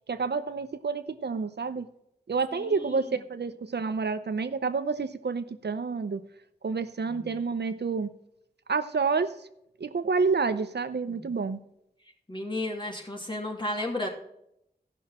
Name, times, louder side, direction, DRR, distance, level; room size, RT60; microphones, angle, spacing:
voice 1, 0.1-1.9 2.3-6.2 6.6-8.1 8.7-9.4 9.8-11.6, right 4 dB, 85° right, 11 dB, 0.6 m, -29 dB
voice 2, 2.5-3.2 7.0-7.4 11.1-11.4 12.3-14.1, left 1 dB, 30° left, 0 dB, 2.6 m, -34 dB
15.0 x 6.2 x 4.2 m, 0.77 s
wide cardioid pair, 55°, 17 cm